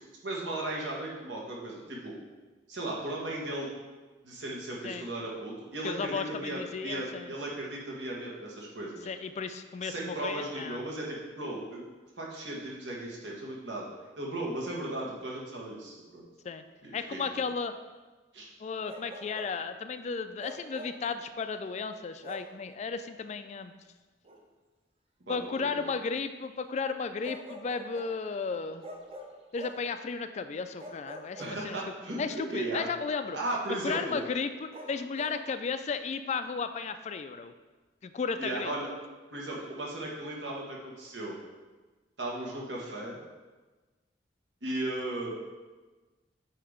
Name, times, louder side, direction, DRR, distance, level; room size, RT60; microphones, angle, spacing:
voice 1, 0.2-2.1 2.7-3.7 4.2-9.1 9.8-11.8 12.2-13.9 14.2-16.2 16.8-17.2 18.3-18.5 25.3-25.9 31.4-32.9 33.3-34.2 38.4-38.9 39.3-41.4 42.2-43.2 44.6-45.3, right 1 dB, 80° right, -3 dB, 1.5 m, -36 dB
voice 2, 5.8-7.3 9.1-10.8 16.4-16.6 16.9-17.7 18.6-23.7 25.3-28.8 29.5-31.8 32.2-33.4 33.8-37.5 38.0-38.7, left 5 dB, 40° left, 10 dB, 0.3 m, -34 dB
Bark, 18.8-19.6 20.4-21.1 22.2-22.6 24.2-24.4 27.2-28.2 28.8-29.9 30.8-32.0 34.7-35.4, equal, 30° right, 0.7 m, -45 dB
8.6 x 2.9 x 5.0 m, 1.3 s
head